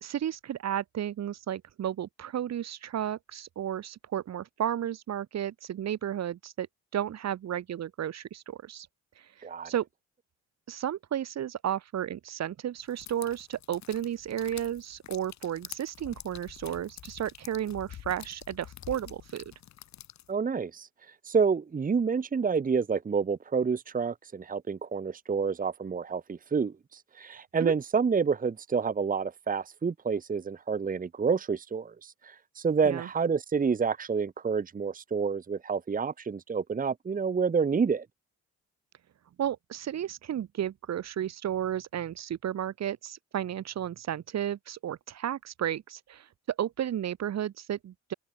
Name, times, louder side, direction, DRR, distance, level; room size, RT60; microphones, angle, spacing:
voice 1, 0.0-6.7 6.9-8.9 9.6-9.9 10.7-19.5 27.6-27.7 32.8-33.1 39.4-46.2 46.6-48.1, right 10 dB, 60° right, 1.7 m, -33 dB
sound 1, 12.9-20.3, left 11 dB, 65° left, 1.7 m, -47 dB
voice 2, 20.3-20.9 21.2-38.0, right 5 dB, 30° right, 1.1 m, -28 dB
open air
cardioid pair, 90°, 30 cm